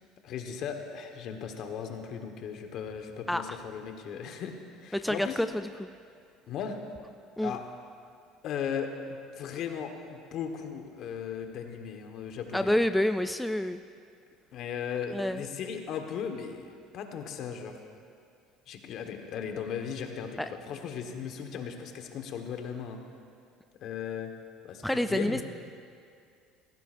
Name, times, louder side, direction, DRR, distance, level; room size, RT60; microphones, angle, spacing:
voice 1, 0.2-5.4 6.5-6.8 7.4-7.6 8.4-12.8 14.5-17.8 18.7-23.0 23.8-24.3 24.6-25.4, left 7 dB, 60° left, 5 dB, 1.3 m, -37 dB
voice 2, 4.9-5.9 7.4-7.6 12.5-13.8 15.1-15.4 20.4-20.5 24.8-25.4, left 1 dB, 5° left, 9 dB, 0.3 m, -28 dB
16.5 x 15.0 x 2.6 m, 2.3 s
supercardioid pair, 105°, 0 cm